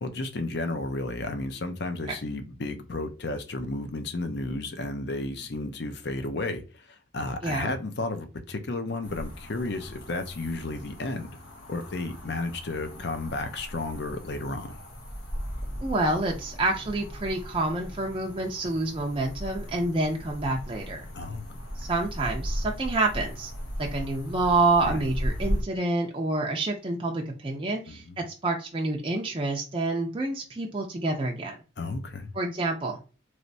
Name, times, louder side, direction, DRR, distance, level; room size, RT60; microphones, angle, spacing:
voice 1, 0.0-11.3 11.7-14.8 21.1-21.5 24.8-25.0 27.9-28.2 31.8-32.3, left 2 dB, 55° left, 0.5 m, -33 dB
sound 1, 9.0-25.6, equal, 75° left, 0.9 m, -37 dB
voice 2, 15.8-21.0 21.8-23.5 23.8-31.6 32.3-33.0, right 2 dB, 25° right, 0.4 m, -28 dB
3.2 x 3.0 x 2.6 m
head